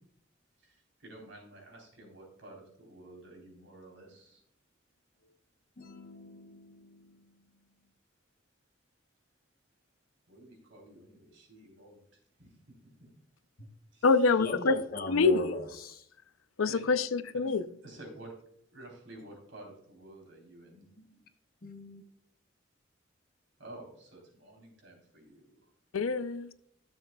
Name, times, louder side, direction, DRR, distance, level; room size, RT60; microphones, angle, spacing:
voice 1, 0.6-4.4 10.3-12.0 12.4-12.7 13.0-13.1 13.9-14.1 16.7-16.8 17.4-17.6 17.8-18.3 18.7-20.9 23.6-25.6, right 2 dB, 65° right, 3.8 m, -51 dB
voice 2, 5.8-7.3 13.6-13.7 14.4-16.1 21.0-21.2 21.6-22.0, left 2 dB, 45° left, 1.1 m, -40 dB
voice 3, 14.0-14.8 15.1-15.5 16.6-17.6 25.9-26.5, left 4 dB, 90° left, 0.5 m, -26 dB
13.5 x 7.4 x 2.3 m
head